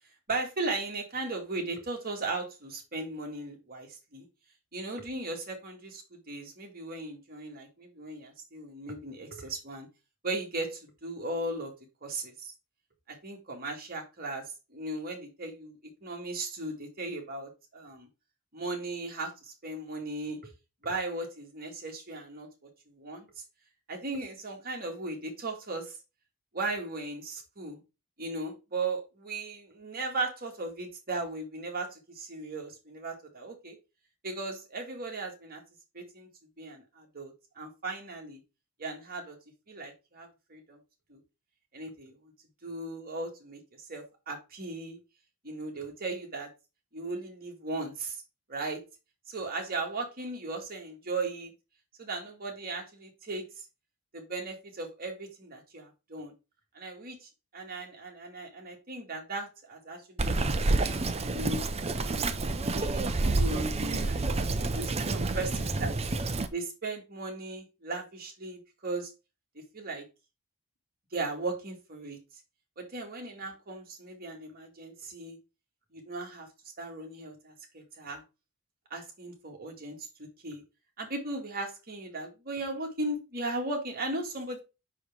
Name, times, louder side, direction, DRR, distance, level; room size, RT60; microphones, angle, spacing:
voice 1, 0.3-4.3 4.7-9.9 10.2-11.7 12.0-12.5 13.1-14.4 14.7-18.1 18.5-20.4 20.8-22.5 22.9-23.3 23.9-26.0 26.5-27.8 28.2-33.8 34.2-35.6 35.9-36.3 36.6-38.4 38.8-39.4 39.7-40.8 41.1-41.2 41.7-42.3 42.6-45.0 45.4-46.5 46.9-48.2 48.5-48.8 49.3-51.5 52.0-53.6 54.1-56.3 56.7-60.6 61.2-61.7 61.9-62.3 62.6-63.1 63.3-64.3 64.7-65.9 66.5-69.1 69.7-70.0 71.1-72.2 72.8-75.4 75.9-76.5 76.8-78.2 78.9-80.0 80.4-80.6 81.0-84.6, right 2 dB, 45° right, 1 dB, 2.1 m, -37 dB
Bird vocalization bird call bird song, 60.2-66.5, right 2 dB, 30° right, 0.6 m, -29 dB
6.0 x 4.9 x 3.6 m, 0.26 s
head